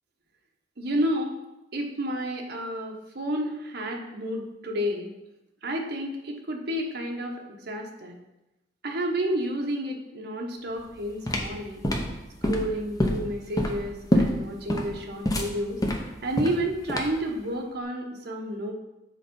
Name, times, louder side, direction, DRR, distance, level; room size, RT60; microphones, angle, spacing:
voice 1, 0.8-1.4 1.7-5.1 5.6-7.3 7.7-8.1 8.8-11.8 12.4-15.8 16.2-18.7, equal, 60° right, 1 dB, 1.1 m, -30 dB
sound 1, 10.8-17.3, equal, 20° left, 0.8 m, -26 dB
6.2 x 4.4 x 5.4 m, 0.95 s
head